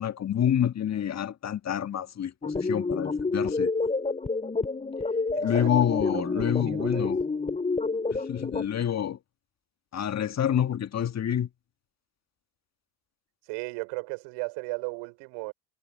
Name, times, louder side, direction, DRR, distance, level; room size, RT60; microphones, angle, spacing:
voice 1, 0.0-3.7 5.4-7.2 8.1-9.2 9.9-11.5, left 9 dB, 35° left, 1.8 m, -28 dB
sound 1, 2.4-8.7, left 3 dB, 15° left, 3.2 m, -29 dB
voice 2, 5.3-7.1 13.5-15.5, right 32 dB, 65° right, 5.8 m, -36 dB
hypercardioid pair, 70°, 45 cm